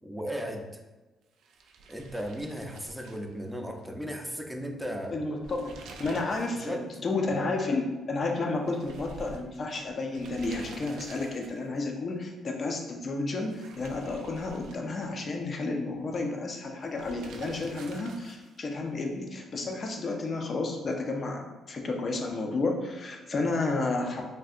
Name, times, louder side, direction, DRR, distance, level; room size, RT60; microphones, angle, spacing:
voice 1, 0.0-0.6 1.9-5.1 6.5-6.9, equal, 5° right, 2 dB, 0.4 m, -36 dB
sound 1, 1.4-3.9 4.2-4.3 5.3-6.7 7.0-7.1 8.7-11.8 13.4-15.4 16.9-18.6, right 3 dB, 80° right, 0.3 m, -48 dB
voice 2, 5.1-24.2, left 3 dB, 45° left, 2 dB, 0.5 m, -31 dB
3.3 x 2.7 x 2.4 m, 1.2 s
cardioid pair, 90°, 0 cm